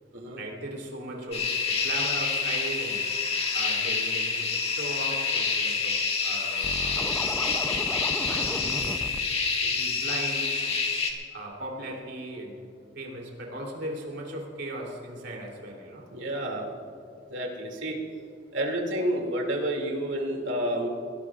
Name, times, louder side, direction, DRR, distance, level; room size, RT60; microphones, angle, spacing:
voice 1, 0.4-3.0 3.5-7.2 7.5-7.8 8.2-9.1 9.6-10.8 11.3-12.7 12.9-16.1, right 1 dB, 70° right, -1 dB, 3.3 m, -38 dB
sound 1, 1.3-11.1, left 5 dB, 35° left, 2.0 m, -27 dB
Scratching (performance technique), 6.6-9.2, left 1 dB, 5° left, 0.6 m, -35 dB
voice 2, 16.1-16.7 17.3-18.0 18.5-20.9, right 1 dB, 90° right, 0 dB, 2.7 m, -29 dB
22.5 x 18.0 x 2.5 m, 2.6 s
head